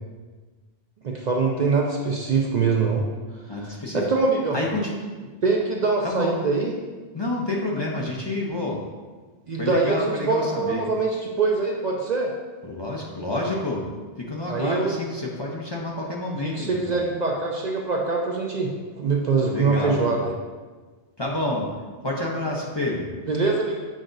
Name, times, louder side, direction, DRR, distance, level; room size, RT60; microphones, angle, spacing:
voice 1, 1.0-3.0 3.9-4.6 5.4-6.7 9.5-12.3 14.5-14.9 16.4-20.3 23.3-23.8, right 4 dB, 50° right, -1 dB, 0.6 m, -23 dB
voice 2, 3.5-4.0 4.5-5.0 6.0-6.4 7.1-8.8 9.6-10.9 12.6-13.9 14.2-16.9 19.5-20.0 21.2-21.7 22.0-23.1, left 1 dB, 30° left, -3 dB, 0.7 m, -28 dB
7.4 x 4.9 x 2.6 m, 1.4 s
omnidirectional pair, 1.1 m